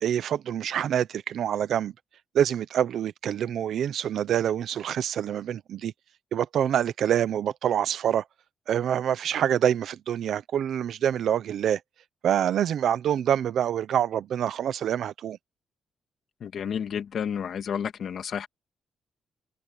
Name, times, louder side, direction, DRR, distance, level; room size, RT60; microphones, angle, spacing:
voice 1, 0.0-1.9 2.3-5.9 6.3-8.2 8.7-11.8 12.2-15.4, right 9 dB, 70° right, 0.8 m, -26 dB
voice 2, 16.4-18.5, left 7 dB, 55° left, 1.9 m, -31 dB
cardioid pair, 150°, 0 cm